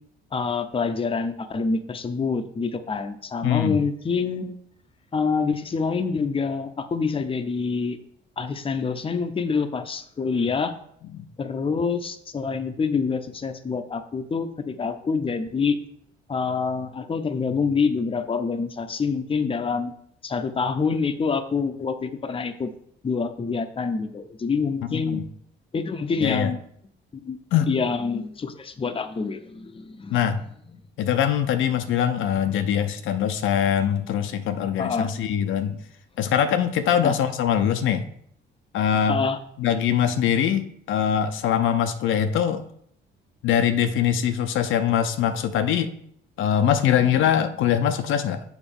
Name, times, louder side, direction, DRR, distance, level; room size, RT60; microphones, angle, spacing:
voice 1, 0.3-4.6 5.1-8.0 8.4-10.7 11.4-15.8 16.3-19.9 20.2-22.7 23.0-25.2 25.7-26.6 27.2-27.4 27.7-30.2 34.8-35.1 37.0-37.1 39.1-39.4, left 5 dB, 25° left, 9 dB, 0.7 m, -26 dB
voice 2, 3.4-3.8 11.1-11.3 24.9-25.2 26.2-26.5 27.5-27.7 30.1-30.4 31.0-35.8 36.2-38.0 38.7-39.2 39.6-42.6 43.4-45.9 46.4-48.4, left 9 dB, 80° left, 9 dB, 0.6 m, -22 dB
7.1 x 3.9 x 5.5 m, 0.67 s
cardioid pair, 90°, 20 cm